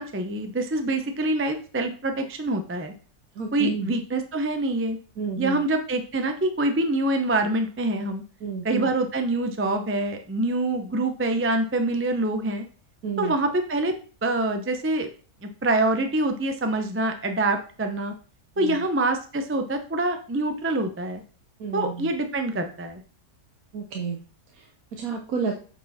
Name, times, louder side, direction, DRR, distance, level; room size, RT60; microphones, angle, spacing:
voice 1, 0.0-2.9 3.5-5.0 5.4-8.2 8.6-12.6 13.2-13.9 14.2-15.1 15.4-18.1 18.6-21.2 21.7-23.0, right 2 dB, 15° right, 6 dB, 0.5 m, -25 dB
voice 2, 3.4-3.9 5.2-5.6 8.4-8.9 13.0-13.3 18.6-18.8 21.6-22.1 23.7-24.2 24.9-25.6, right 5 dB, 70° right, 2 dB, 1.4 m, -30 dB
8.1 x 4.4 x 4.2 m, 0.38 s
omnidirectional pair, 1.6 m